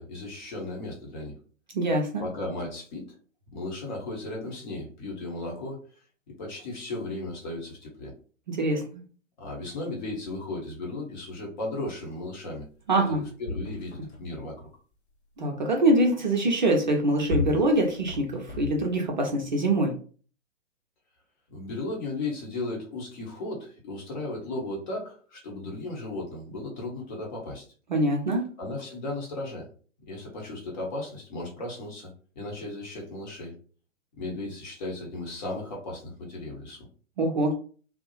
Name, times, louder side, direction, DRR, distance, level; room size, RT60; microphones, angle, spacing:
voice 1, 0.0-1.3 2.2-3.0 3.5-5.8 6.3-8.1 9.4-12.7 13.0-14.7 21.5-27.6 28.6-29.7 30.1-33.5 34.2-36.9, left 2 dB, 35° left, -2 dB, 0.9 m, -35 dB
voice 2, 1.7-2.2 8.5-9.0 12.9-13.2 15.4-19.9 27.9-28.4 37.2-37.5, right 1 dB, 40° right, 0 dB, 0.4 m, -24 dB
sound 1, 12.8-12.9 13.1-14.5 16.8-19.2 19.9-20.0, left 3 dB, 55° left, 0.7 m, -35 dB
2.6 x 2.0 x 2.8 m, 0.41 s
figure-of-eight pair, 125°, 38 cm